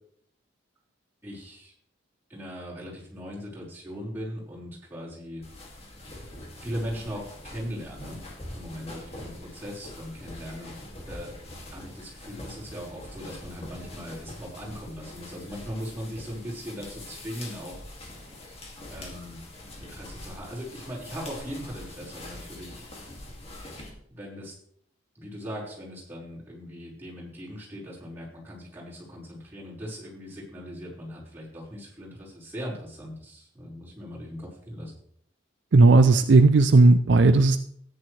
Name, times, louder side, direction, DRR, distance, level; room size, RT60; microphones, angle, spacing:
voice 1, 1.2-1.7 2.3-5.4 5.9-6.0 6.6-8.2 8.5-10.7 11.0-11.3 11.7-17.8 18.9-19.4 19.8-22.8 24.1-24.5 25.1-34.9, equal, 10° right, -7 dB, 4.8 m, -39 dB
sound 1, 5.4-23.9, left 1 dB, 30° left, 2.4 m, -43 dB
voice 2, 35.7-37.6, right 3 dB, 65° right, 10 dB, 0.5 m, -16 dB
13.5 x 10.0 x 3.3 m, 0.64 s
head